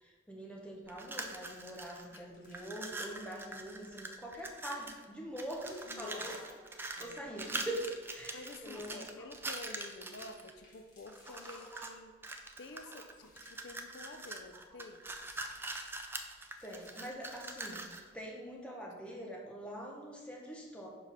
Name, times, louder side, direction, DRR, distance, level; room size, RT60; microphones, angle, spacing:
voice 1, 0.0-6.6 7.0-9.1 11.3-11.9 12.9-13.1 15.6-15.7 16.6-20.9, right 1 dB, 5° left, -2 dB, 1.1 m, -44 dB
sound 1, 0.9-2.2 2.5-5.0 5.4-10.5 11.1-11.9 12.2-18.1, right 2 dB, 10° right, 0.4 m, -43 dB
sound 2, 1.0-1.2 1.5-3.6 4.2-4.6 5.2-5.3 5.7-7.0 7.4-8.7 9.1-9.2 9.4-9.7 10.4-12.3 12.8-13.8 14.9-16.1 16.4-17.9 18.2-18.3 18.8-19.1, left 2 dB, 45° left, 1.8 m, -64 dB
voice 2, 5.9-6.4 7.0-7.2 8.3-12.1 12.6-15.0, left 3 dB, 65° left, 6 dB, 0.5 m, -50 dB
5.3 x 4.9 x 5.7 m, 1.5 s
head